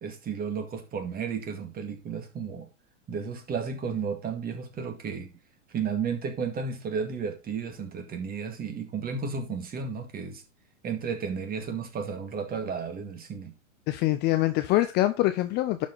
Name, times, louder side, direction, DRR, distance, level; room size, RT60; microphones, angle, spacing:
voice 1, 0.0-2.7 3.1-5.3 5.7-10.4 10.8-13.5, right 6 dB, 25° right, 2.1 m, -33 dB
voice 2, 13.9-15.9, left 16 dB, 25° left, 0.6 m, -24 dB
11.5 x 5.2 x 4.0 m
hypercardioid pair, 105°, 39 cm